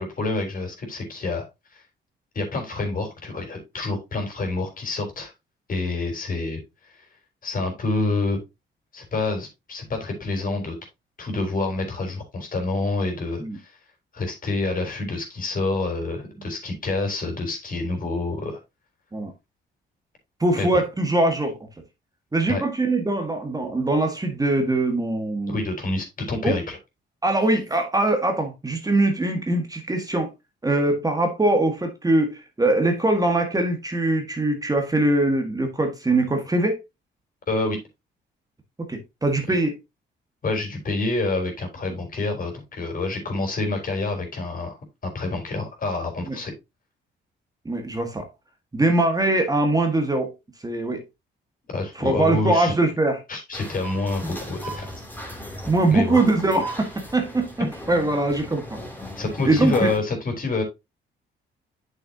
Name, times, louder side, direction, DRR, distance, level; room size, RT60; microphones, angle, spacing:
voice 1, 0.0-1.5 1.7-1.8 2.3-5.3 5.7-6.6 7.4-8.4 8.9-10.8 11.2-13.8 14.1-18.6 20.6-20.7 22.5-22.6 25.5-26.8 37.5-37.8 40.4-46.5 51.7-52.7 53.3-54.9 55.6-56.2 59.2-60.6, left 2 dB, 45° left, 3.7 m, -27 dB
voice 2, 20.4-21.6 22.3-25.6 26.4-26.6 27.2-30.3 30.6-36.8 38.8-39.7 46.3-46.4 47.6-48.3 48.7-50.3 50.6-51.0 52.0-53.2 55.7-58.8 59.4-59.7, right 2 dB, 20° right, 1.6 m, -22 dB
sound 1, 53.5-60.0, equal, 10° left, 2.9 m, -37 dB
8.5 x 6.5 x 2.8 m
cardioid pair, 90°, 20 cm